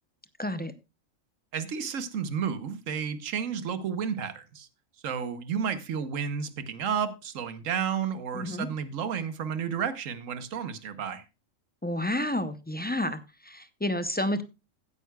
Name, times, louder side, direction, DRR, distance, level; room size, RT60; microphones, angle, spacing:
voice 1, 0.4-0.7 8.3-8.7 11.8-14.4, left 1 dB, 15° left, 0.3 m, -30 dB
voice 2, 1.5-4.7 5.0-11.2, right 7 dB, 85° right, 1.3 m, -32 dB
15.5 x 9.3 x 2.3 m
omnidirectional pair, 1.3 m